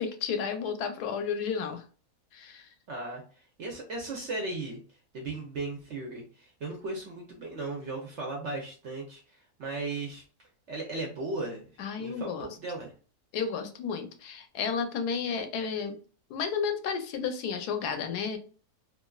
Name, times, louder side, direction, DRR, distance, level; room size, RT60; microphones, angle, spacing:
voice 1, 0.0-1.8 2.3-2.7 11.8-12.5 13.3-16.0 16.3-18.4, left 6 dB, 80° left, 7 dB, 1.1 m, -32 dB
voice 2, 2.9-4.8 5.1-10.2 10.7-11.7 12.0-12.9, right 2 dB, 65° right, 0 dB, 0.7 m, -36 dB
3.1 x 2.4 x 2.3 m, 0.39 s
omnidirectional pair, 1.7 m